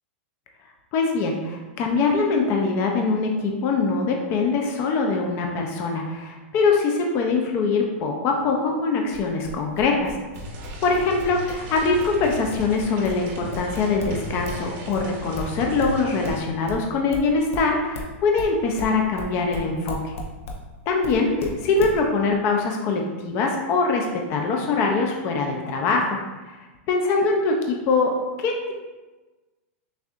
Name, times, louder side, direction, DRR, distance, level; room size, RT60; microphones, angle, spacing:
voice 1, 0.9-10.1 10.8-20.1 20.9-26.2 26.4-28.7, left 4 dB, 35° left, 1 dB, 0.5 m, -23 dB
sound 1, 9.1-14.6 14.9-20.6 21.0-22.0, left 2 dB, 90° left, 0.8 m, -35 dB
sound 2, 10.4-16.4, right 1 dB, 45° right, 0.8 m, -37 dB
6.5 x 2.6 x 2.4 m, 1.2 s
supercardioid pair, 150°, 7 cm